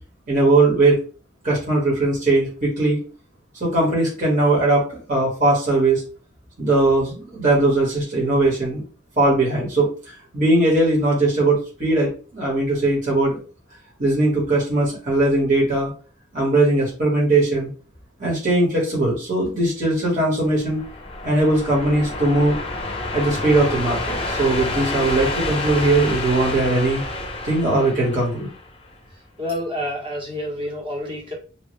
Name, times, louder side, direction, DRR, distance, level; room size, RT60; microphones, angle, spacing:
voice 1, 0.3-1.0 1.4-3.0 3.6-6.0 6.6-8.8 9.2-13.4 14.0-15.9 16.3-17.7 18.2-20.8 21.2-22.6 23.1-27.0 27.4-28.5, right 2 dB, 45° right, -4 dB, 1.4 m, -19 dB
sound 1, 20.4-28.9, left 2 dB, 30° left, 0.5 m, -29 dB
voice 2, 29.4-31.3, left 1 dB, 30° right, -2 dB, 1.1 m, -28 dB
3.1 x 2.3 x 3.0 m, 0.36 s
head